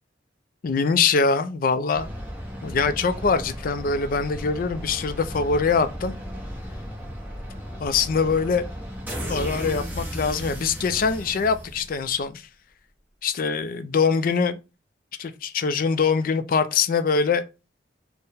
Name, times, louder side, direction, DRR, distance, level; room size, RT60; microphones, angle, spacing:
voice 1, 0.6-2.1 2.6-6.1 7.8-8.6 9.3-12.4 13.2-14.6 15.2-17.4, left 5 dB, 50° left, 0.4 m, -23 dB
sound 1, 1.9-12.2, equal, 10° right, 0.8 m, -35 dB
4.4 x 2.1 x 3.3 m
head